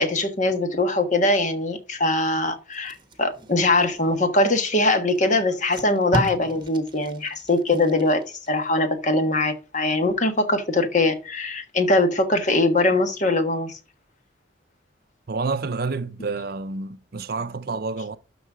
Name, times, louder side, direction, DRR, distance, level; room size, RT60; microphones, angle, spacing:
voice 1, 0.0-13.7, left 2 dB, 40° left, 1.3 m, -22 dB
Packing tape duct tape, 2.7-4.4 5.1-5.2 5.5-8.5 8.9-9.2, right 1 dB, 25° right, 1.1 m, -34 dB
voice 2, 15.3-18.2, right 4 dB, 50° right, 0.6 m, -29 dB
12.5 x 4.1 x 4.9 m
head